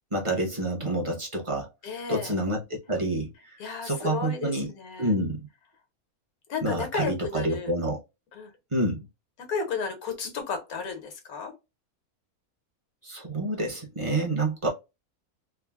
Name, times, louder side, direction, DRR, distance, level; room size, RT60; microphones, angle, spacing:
voice 1, 0.1-1.7 2.1-4.7 5.0-5.5 6.6-8.0 8.7-9.1 13.0-14.7, right 1 dB, 30° right, 0.7 m, -28 dB
voice 2, 1.8-2.3 3.6-5.1 6.5-7.7 8.3-8.5 9.4-11.5, left 5 dB, 75° left, 1.4 m, -33 dB
3.4 x 2.0 x 2.2 m
omnidirectional pair, 1.6 m